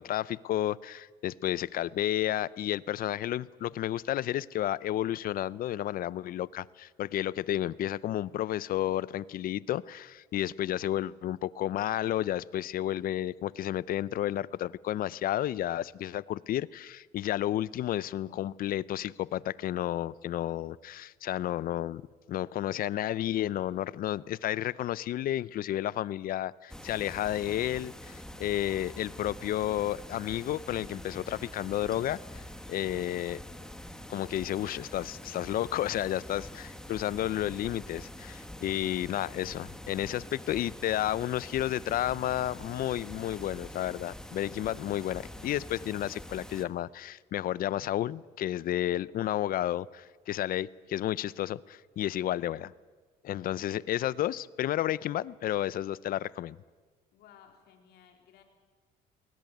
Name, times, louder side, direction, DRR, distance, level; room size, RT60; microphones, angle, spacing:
voice 1, 0.0-22.0 22.3-32.2 32.7-33.4 34.1-52.7 53.2-56.6, left 12 dB, 60° left, 21 dB, 0.6 m, -32 dB
sound 1, 26.7-46.6, left 1 dB, 5° left, 1.6 m, -45 dB
voice 2, 38.8-39.3 57.1-58.4, left 8 dB, 80° left, 3 dB, 3.9 m, -59 dB
21.0 x 19.0 x 9.3 m, 1.5 s
cardioid pair, 110°, 17 cm